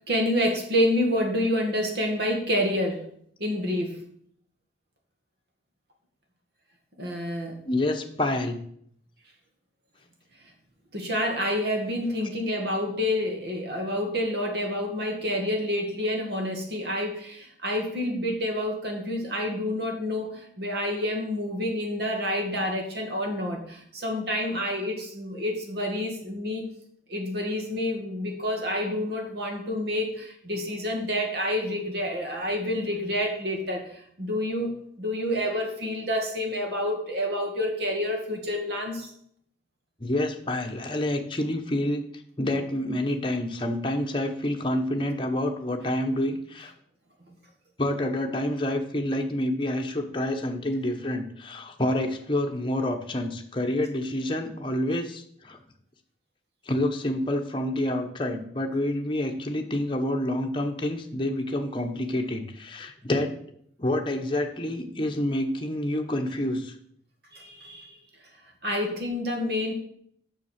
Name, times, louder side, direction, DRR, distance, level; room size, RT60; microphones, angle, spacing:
voice 1, 0.1-3.1 3.4-4.0 7.0-7.6 10.9-26.6 27.1-33.8 34.2-39.1 67.3-68.0 68.6-69.7, left 1 dB, 60° right, 2 dB, 2.0 m, -28 dB
voice 2, 7.6-8.6 40.0-42.0 42.4-46.7 47.8-55.6 56.7-63.3 63.8-66.7, left 1 dB, 25° left, 3 dB, 1.0 m, -28 dB
7.0 x 6.6 x 6.6 m, 0.66 s
head